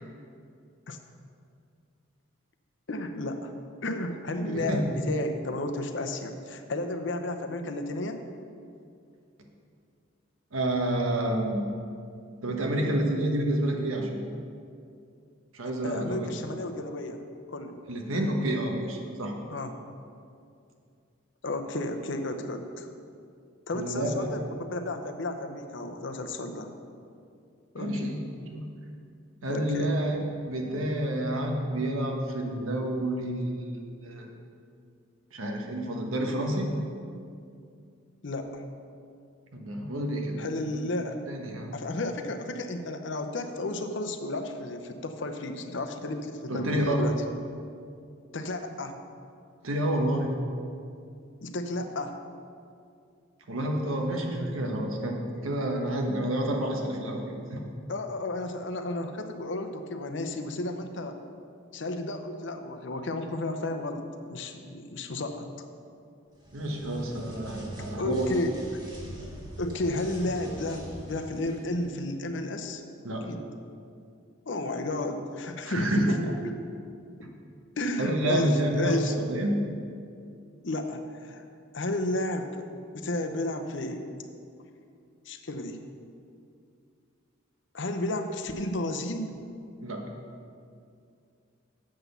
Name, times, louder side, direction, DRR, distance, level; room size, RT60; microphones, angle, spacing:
voice 1, 2.9-3.5 3.8-8.2 15.8-17.2 17.5-17.8 19.5-19.8 21.4-22.9 23.7-26.7 27.7-28.1 29.5-29.9 38.2-38.6 40.4-41.2 41.7-47.2 48.3-49.0 51.4-52.2 57.9-61.2 61.7-65.5 68.0-68.6 69.6-72.8 73.3-73.4 74.5-76.1 77.8-79.1 80.6-81.4 81.7-82.6 82.9-84.1 85.3-85.8 87.7-89.3, left 2 dB, 60° left, 6 dB, 0.7 m, -32 dB
voice 2, 4.4-4.8 10.5-11.6 12.4-14.2 15.5-16.3 17.9-19.4 23.7-24.5 27.8-28.2 28.5-28.7 29.4-34.3 35.3-36.7 39.5-40.4 40.7-40.8 41.3-42.0 46.5-47.0 49.6-50.3 53.5-57.2 57.5-57.6 66.5-68.3 73.0-73.3 75.6-76.2 77.2-77.3 78.0-79.6 89.8-90.1, right 1 dB, 85° right, 1 dB, 1.3 m, -29 dB
sound 1, 66.3-72.0, right 1 dB, 20° right, 1.7 m, -43 dB
7.7 x 6.0 x 6.9 m, 2.4 s
head